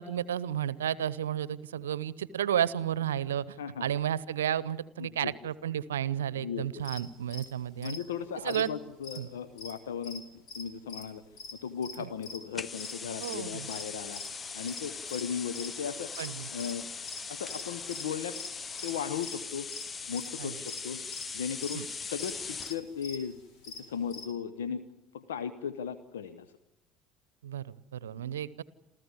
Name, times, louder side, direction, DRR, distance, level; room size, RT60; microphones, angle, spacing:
voice 1, 0.0-8.0 8.4-8.7 9.2-9.3 12.0-12.1 13.2-13.7 16.2-16.5 20.4-20.6 21.7-21.9 27.4-28.6, right 10 dB, 75° right, 20 dB, 0.7 m, -32 dB
voice 2, 5.0-5.3 6.4-6.9 7.8-11.2 11.6-14.2 14.5-16.1 16.5-16.9 17.3-18.4 18.8-19.7 20.1-21.0 21.3-23.4 23.7-24.8 25.1-26.5 28.2-28.3, left 7 dB, 75° left, 12 dB, 0.9 m, -37 dB
sound 1, 6.8-10.2 10.5-15.7 16.1-18.5 18.8-18.9 19.2-19.4 19.7-24.3, left 4 dB, 55° left, 4.7 m, -45 dB
sound 2, 12.5-22.8, left 5 dB, 30° left, 0.8 m, -40 dB
28.0 x 14.5 x 9.7 m, 0.92 s
figure-of-eight pair, 65°, 0 cm